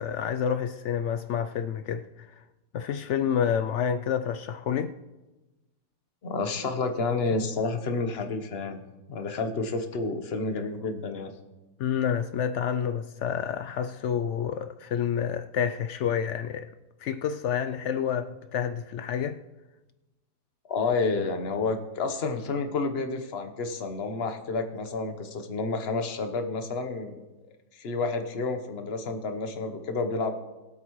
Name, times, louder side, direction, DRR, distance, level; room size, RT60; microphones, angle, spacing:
voice 1, 0.0-2.4 2.7-4.9 11.8-16.7 17.0-19.4, left 8 dB, 75° left, 0.6 m, -29 dB
voice 2, 6.2-8.8 9.1-11.3 20.7-27.2 27.7-30.4, left 3 dB, 45° left, 1.1 m, -30 dB
22.5 x 8.2 x 3.1 m
omnidirectional pair, 1.7 m